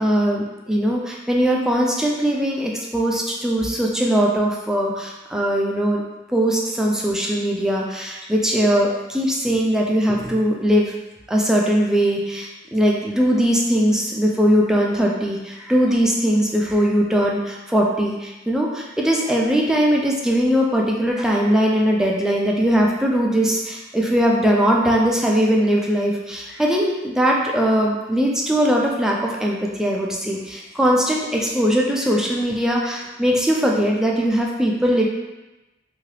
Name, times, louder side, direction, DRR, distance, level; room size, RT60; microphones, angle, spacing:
voice 1, 0.0-6.0 6.3-10.9 11.3-35.1, equal, 5° right, -2 dB, 0.3 m, -20 dB
2.8 x 2.4 x 3.1 m, 1.1 s
head